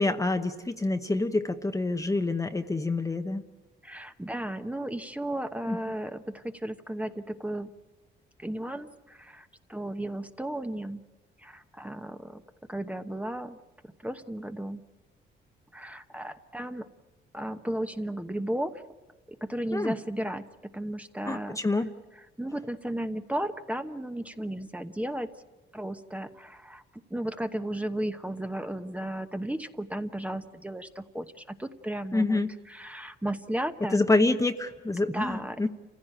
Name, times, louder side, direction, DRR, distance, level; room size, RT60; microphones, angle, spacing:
voice 1, 0.0-3.4 5.7-5.8 19.7-19.9 21.3-21.9 32.1-32.5 33.9-35.7, left 2 dB, 15° left, 7 dB, 0.9 m, -27 dB
voice 2, 3.8-7.7 8.4-11.0 11.4-12.4 12.7-13.6 14.0-14.8 15.7-16.9 17.3-18.8 19.3-20.4 20.7-21.6 22.4-25.3 25.7-26.8 27.1-32.4 32.7-34.0 35.1-35.7, right 1 dB, 5° right, 8 dB, 1.0 m, -34 dB
28.0 x 15.5 x 9.0 m, 1.2 s
cardioid pair, 90°, 20 cm